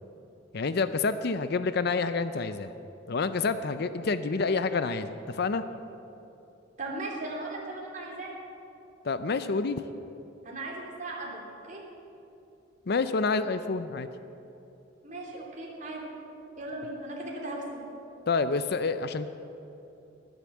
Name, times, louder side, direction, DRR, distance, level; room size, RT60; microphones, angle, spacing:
voice 1, 0.5-2.7 3.1-5.6 9.0-9.8 12.9-14.1 18.3-19.3, left 4 dB, 55° left, 11 dB, 0.5 m, -28 dB
voice 2, 6.8-8.3 10.4-11.8 15.0-16.0 16.6-17.8, right 2 dB, 40° right, -3 dB, 3.1 m, -37 dB
20.5 x 8.1 x 7.3 m, 2.8 s
head